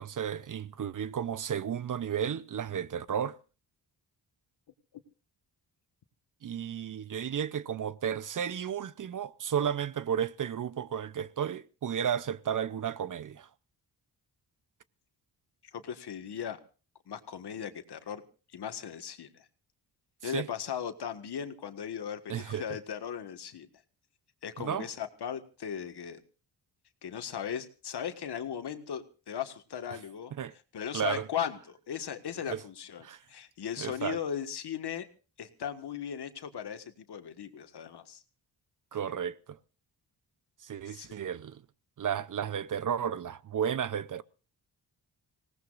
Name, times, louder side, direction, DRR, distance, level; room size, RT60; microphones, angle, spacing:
voice 1, 0.0-3.4 6.4-13.5 20.2-20.5 22.3-22.6 24.6-24.9 30.4-30.5 30.9-31.3 32.5-32.6 33.0-33.2 33.8-34.2 38.9-39.4 40.6-41.6 42.0-44.2, right 8 dB, 50° right, 0.7 m, -33 dB
voice 2, 15.7-16.6 17.1-18.2 18.5-19.5 20.2-23.7 24.4-26.2 27.0-30.3 30.7-35.1 35.4-38.2 40.8-41.1, left 8 dB, 70° left, 1.7 m, -37 dB
26.0 x 18.0 x 2.5 m
cardioid pair, 90°, 41 cm